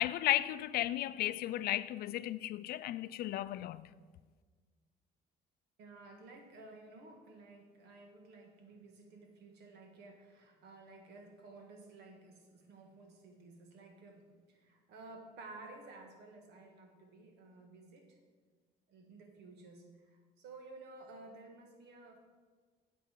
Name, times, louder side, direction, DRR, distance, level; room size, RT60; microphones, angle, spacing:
voice 1, 0.0-3.9, left 14 dB, 65° left, 0.4 m, -34 dB
voice 2, 5.8-18.2 18.9-22.2, right 3 dB, 80° right, 1.6 m, -54 dB
8.6 x 8.1 x 4.6 m
cardioid pair, 110°, 17 cm